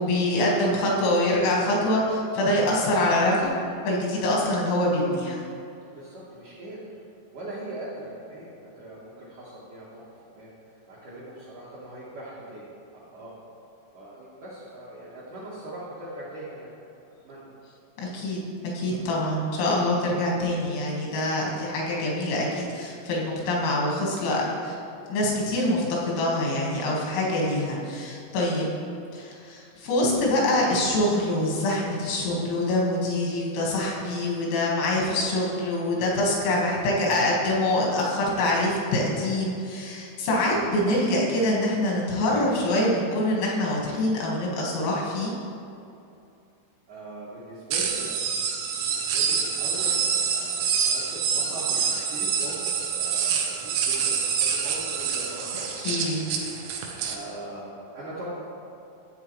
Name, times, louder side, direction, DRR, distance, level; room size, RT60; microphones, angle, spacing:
voice 1, 0.0-3.6 3.9-5.4 18.0-24.8 25.1-28.7 29.1-45.3 55.9-56.2, left 1 dB, 90° left, -3 dB, 4.4 m, -25 dB
voice 2, 6.0-6.9 7.3-10.0 10.3-10.5 10.9-12.7 12.9-13.3 13.9-16.7 17.2-17.5 18.9-19.0 26.8-27.1 35.7-36.0 46.9-48.2 48.8-55.9 56.4-58.3, right 1 dB, 70° right, -9 dB, 2.0 m, -40 dB
sound 1, 47.7-57.2, right 6 dB, 85° right, 3.3 m, -26 dB
12.5 x 8.1 x 3.2 m, 2.6 s
omnidirectional pair, 5.6 m